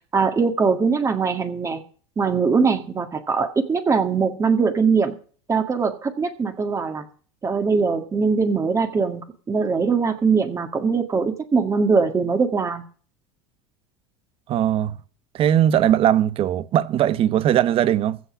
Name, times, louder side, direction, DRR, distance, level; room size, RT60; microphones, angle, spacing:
voice 1, 0.1-1.8 2.2-5.2 5.5-7.1 7.4-12.8, right 5 dB, 20° right, 1.8 m, -21 dB
voice 2, 14.5-15.0 15.3-18.2, right 11 dB, 45° right, 0.9 m, -19 dB
15.5 x 5.7 x 8.4 m
supercardioid pair, 105°, 13 cm